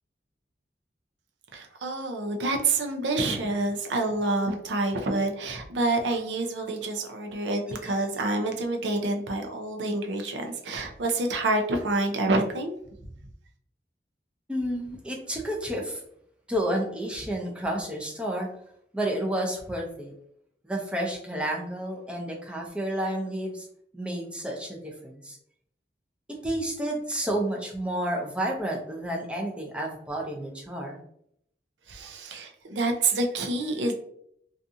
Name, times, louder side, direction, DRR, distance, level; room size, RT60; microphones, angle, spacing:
voice 1, 1.5-12.8 31.9-33.9, right 2 dB, 85° right, 4 dB, 0.5 m, -27 dB
voice 2, 14.5-16.0 16.5-18.5 18.9-20.1 20.6-23.7 23.9-25.4 26.4-31.0, right 1 dB, 5° right, -2 dB, 0.4 m, -30 dB
2.6 x 2.4 x 2.5 m, 0.70 s
head